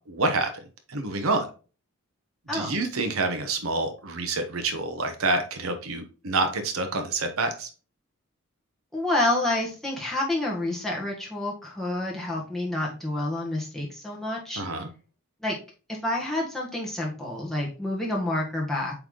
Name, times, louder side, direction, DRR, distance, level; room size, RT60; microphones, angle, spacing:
voice 1, 0.1-0.5 0.9-1.5 2.5-7.7 14.6-14.9, right 3 dB, 80° right, 7 dB, 1.0 m, -27 dB
voice 2, 8.9-14.6 15.4-15.5 16.0-19.0, left 1 dB, ahead, -4 dB, 1.7 m, -28 dB
7.9 x 3.4 x 3.8 m, 0.36 s
head